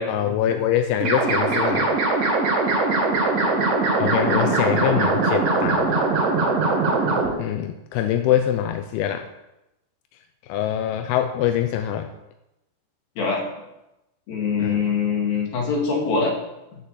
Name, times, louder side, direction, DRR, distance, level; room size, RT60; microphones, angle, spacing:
voice 1, 0.1-2.0 4.0-6.0 7.4-9.3 10.5-12.1 14.6-14.8, left 10 dB, 85° left, 7 dB, 2.2 m, -24 dB
sound 1, 1.0-7.3, right 3 dB, 50° right, 3.9 m, -21 dB
voice 2, 4.2-4.6 13.2-13.4 14.3-16.4, left 5 dB, 60° left, 0 dB, 3.5 m, -23 dB
11.5 x 6.7 x 7.4 m, 0.93 s
omnidirectional pair, 5.3 m